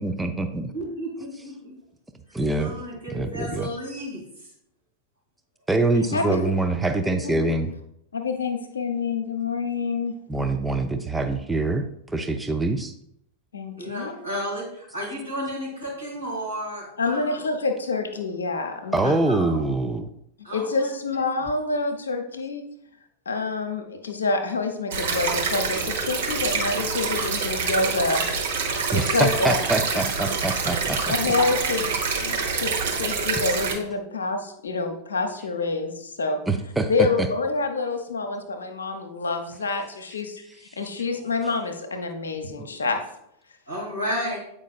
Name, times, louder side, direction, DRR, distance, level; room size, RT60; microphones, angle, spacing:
voice 1, 0.0-0.7 2.3-2.7 3.1-3.7 5.7-7.7 10.3-11.9 12.1-12.9 18.9-20.1 28.9-31.3 36.5-36.9 37.2-37.3, right 2 dB, 5° right, 7 dB, 0.5 m, -24 dB
voice 2, 0.7-1.8 2.3-4.5 12.6-12.7 13.8-17.4 19.0-19.7 20.4-21.5 27.1-27.5 41.2-41.3 43.7-44.4, equal, 90° right, -5 dB, 2.4 m, -33 dB
voice 3, 6.1-6.5 7.2-7.6 8.1-10.2 13.5-14.1 17.0-19.1 20.5-22.7 23.3-28.2 28.9-29.6 29.9-30.0 31.1-36.4 36.9-43.0, left 3 dB, 70° left, 5 dB, 0.8 m, -27 dB
sound 1, 24.9-33.7, right 5 dB, 60° right, 1.0 m, -26 dB
8.1 x 4.9 x 2.4 m, 0.75 s
figure-of-eight pair, 90°, 0 cm